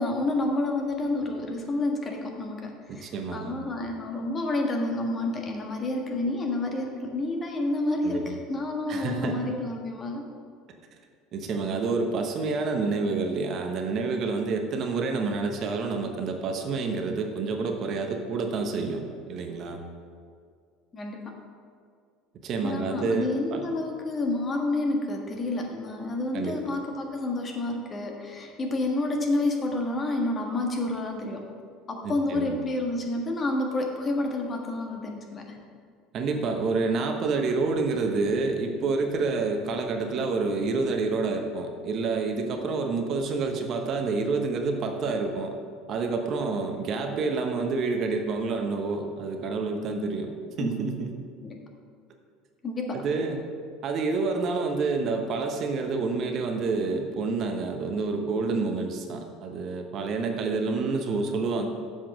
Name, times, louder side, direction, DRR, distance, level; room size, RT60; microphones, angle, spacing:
voice 1, 0.0-10.2 20.9-21.3 22.6-31.4 31.9-35.6 50.6-50.7 51.4-51.6 52.6-53.0, left 2 dB, 30° left, 1 dB, 1.5 m, -29 dB
voice 2, 2.9-3.5 8.0-8.3 8.9-9.4 11.3-19.0 19.3-19.8 22.4-23.6 26.3-26.6 32.0-32.5 36.1-45.5 45.9-51.1 52.9-53.4 53.8-61.6, right 4 dB, 50° right, 4 dB, 1.0 m, -28 dB
7.3 x 5.7 x 6.3 m, 2.1 s
hypercardioid pair, 70°, 0 cm